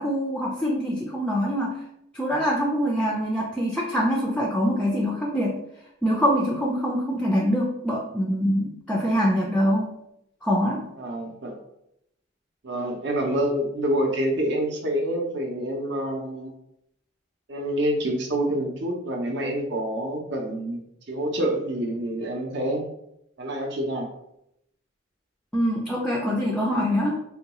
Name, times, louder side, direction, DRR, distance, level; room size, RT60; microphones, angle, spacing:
voice 1, 0.0-1.8 2.1-5.6 6.0-9.9 10.4-10.9 25.5-27.2, equal, 5° left, -3 dB, 0.3 m, -24 dB
voice 2, 11.0-11.5 12.6-16.5 17.5-20.8 21.1-22.9 23.4-24.1, right 1 dB, 55° right, 2 dB, 0.6 m, -27 dB
3.6 x 2.2 x 2.9 m, 0.79 s
head